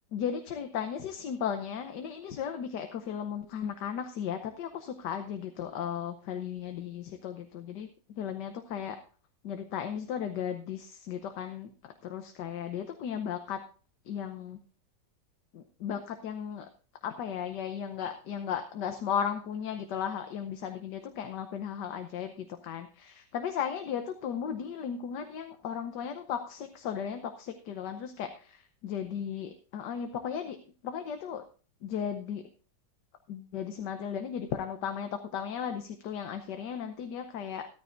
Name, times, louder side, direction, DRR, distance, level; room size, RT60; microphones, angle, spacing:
voice 1, 0.1-9.0 9.4-13.6 14.1-14.6 15.5-16.7 17.0-30.6 30.8-31.4 31.8-32.4 33.3-37.7, left 8 dB, 80° left, 7 dB, 1.5 m, -36 dB
13.5 x 13.5 x 2.6 m, 0.37 s
omnidirectional pair, 1.8 m